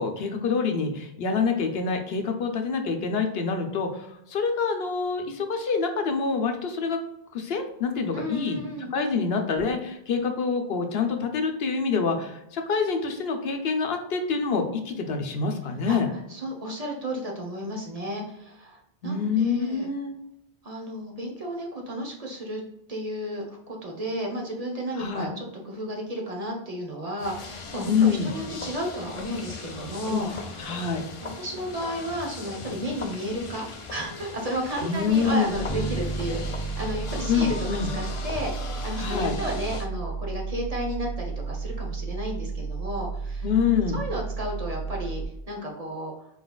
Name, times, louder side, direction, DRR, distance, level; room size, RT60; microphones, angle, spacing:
voice 1, 0.0-7.0 7.3-8.6 8.9-16.1 19.0-20.1 25.0-25.3 27.8-28.3 30.1-30.2 30.6-31.0 34.8-35.5 37.3-37.9 39.0-39.4 43.4-44.0, left 5 dB, 75° left, 4 dB, 0.9 m, -26 dB
voice 2, 8.1-8.9 15.9-19.9 20.6-22.6 22.9-30.8 31.2-37.6 37.9-43.5 43.9-46.3, equal, 40° right, 0 dB, 0.9 m, -33 dB
sound 1, 27.2-39.9, left 4 dB, 40° left, 0.5 m, -38 dB
sound 2, 35.5-45.3, right 4 dB, 15° right, 0.6 m, -33 dB
sound 3, 35.7-39.4, right 2 dB, 25° left, 1.2 m, -37 dB
4.3 x 4.0 x 2.3 m, 0.83 s
omnidirectional pair, 1.0 m